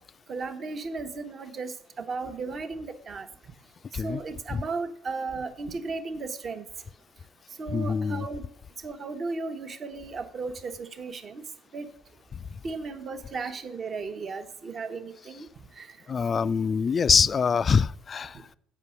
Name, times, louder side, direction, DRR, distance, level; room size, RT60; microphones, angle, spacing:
voice 1, 0.3-3.3 4.0-6.7 7.6-8.4 8.8-11.4 11.7-11.9 12.6-15.5 15.8-15.9, right 4 dB, 40° right, 0.9 m, -35 dB
voice 2, 7.7-8.3 12.3-12.4 16.1-18.5, left 6 dB, 40° left, 0.3 m, -24 dB
8.0 x 5.5 x 6.9 m
hypercardioid pair, 55°, 0 cm